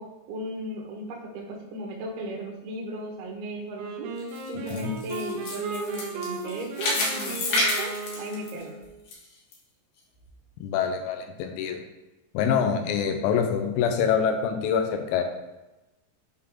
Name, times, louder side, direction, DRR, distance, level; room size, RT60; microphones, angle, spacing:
voice 1, 0.0-4.1 4.5-8.7, right 1 dB, 75° right, -1 dB, 2.5 m, -36 dB
Wind instrument woodwind instrument, 3.7-8.9, right 3 dB, 90° right, 2.4 m, -37 dB
sound 1, 4.2-9.1 9.5-9.6 10.2-10.3, left 2 dB, 70° left, 2.2 m, -29 dB
voice 2, 10.6-11.8 12.3-15.2, left 7 dB, 85° left, 4 dB, 3.4 m, -25 dB
8.2 x 3.7 x 3.6 m, 1.0 s
omnidirectional pair, 5.9 m